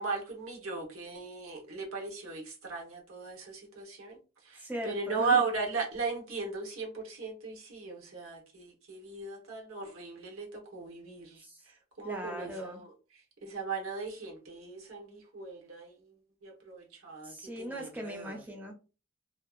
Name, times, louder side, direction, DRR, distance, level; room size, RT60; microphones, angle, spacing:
voice 1, 0.0-18.4, right 4 dB, 80° right, 1.0 m, -37 dB
voice 2, 4.6-5.4 11.4-11.6 12.0-12.8 17.2-18.7, equal, 10° right, 0.5 m, -39 dB
2.6 x 2.2 x 2.3 m
head